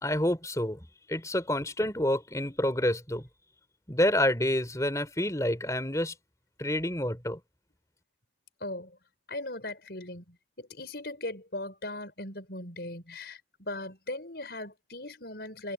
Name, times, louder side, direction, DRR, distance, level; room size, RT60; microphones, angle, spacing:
voice 1, 0.0-0.8 1.1-3.3 3.9-6.1 6.6-7.4, left 1 dB, 20° left, 3.6 m, -28 dB
voice 2, 8.6-9.0 9.3-15.7, left 2 dB, 65° left, 5.1 m, -39 dB
head